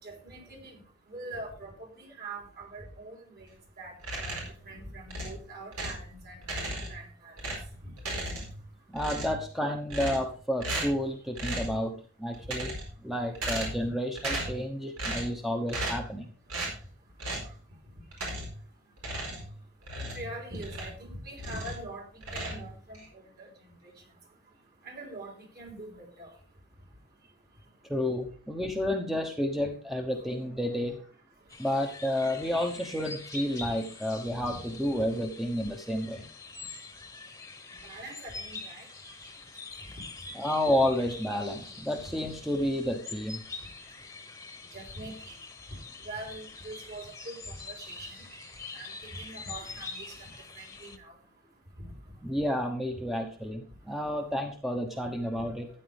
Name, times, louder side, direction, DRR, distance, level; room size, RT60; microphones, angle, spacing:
voice 1, 0.0-0.8 1.1-3.5 3.8-7.4 7.8-7.9 19.9-22.0 22.3-23.5 24.8-26.3 33.6-33.7 37.8-38.9 42.0-42.2 44.7-45.4 46.0-48.2 48.7-50.3 50.6-51.1, right 2 dB, 45° right, 1 dB, 3.8 m, -43 dB
sound 1, 4.0-4.6 5.1-6.1 6.4-7.1 7.4-8.7 8.9-9.5 9.9-10.3 10.6-11.0 11.4-11.8 12.3-13.0 13.3-13.9 14.2-14.6 15.0-15.4 15.7-16.1 16.5-16.8 17.2-17.5 18.1-18.6 19.0-21.0 21.3-21.9 22.2-23.1, right 1 dB, 85° right, 4.6 m, -35 dB
voice 2, 8.9-12.7 13.0-16.3 27.9-31.0 31.6-36.3 40.3-43.4 52.2-55.7, left 1 dB, ahead, 3 dB, 0.9 m, -31 dB
sound 2, 31.5-51.0, left 3 dB, 15° left, 1.2 m, -45 dB
13.0 x 9.2 x 3.4 m, 0.39 s
head